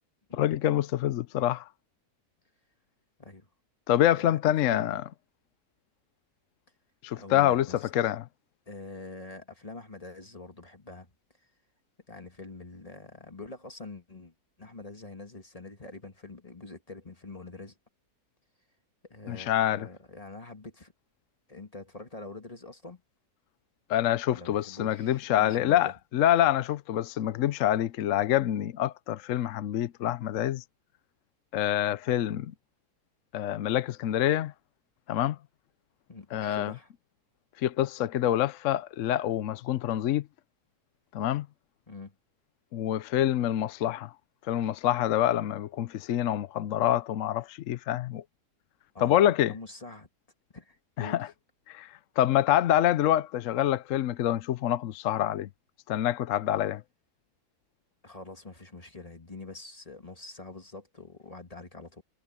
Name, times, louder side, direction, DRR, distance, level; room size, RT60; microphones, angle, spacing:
voice 1, 0.3-1.6 3.9-5.0 7.0-7.7 7.9-8.3 19.3-19.9 23.9-30.6 31.5-32.5 33.3-34.5 35.1-35.4 36.3-36.7 37.6-40.2 41.1-41.5 42.7-44.1 44.5-48.2 49.0-49.5 51.0-51.3 51.7-51.9 52.2-55.5 55.9-56.8, left 12 dB, 65° left, 0.9 m, -26 dB
voice 2, 4.1-4.9 7.1-7.9 8.7-11.1 12.1-17.8 19.1-20.9 21.5-23.0 24.3-25.9 36.1-36.9 41.9-42.1 48.9-50.1 50.5-51.3 58.0-62.0, left 3 dB, 25° left, 1.7 m, -45 dB
omnidirectional pair, 1.7 m